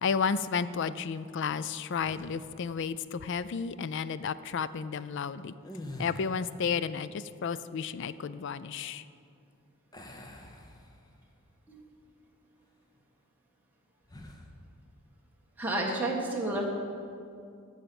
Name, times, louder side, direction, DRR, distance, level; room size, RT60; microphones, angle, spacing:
voice 1, 0.0-5.5 6.0-9.0, left 6 dB, 55° left, 15 dB, 0.4 m, -32 dB
sound 1, 2.0-2.6 5.5-6.6 9.9-11.3 11.8-12.0 14.0-14.5, left 1 dB, 20° left, 0.8 m, -45 dB
voice 2, 15.6-16.7, right 1 dB, 10° right, -3 dB, 1.4 m, -30 dB
14.5 x 5.7 x 7.0 m, 2.4 s
head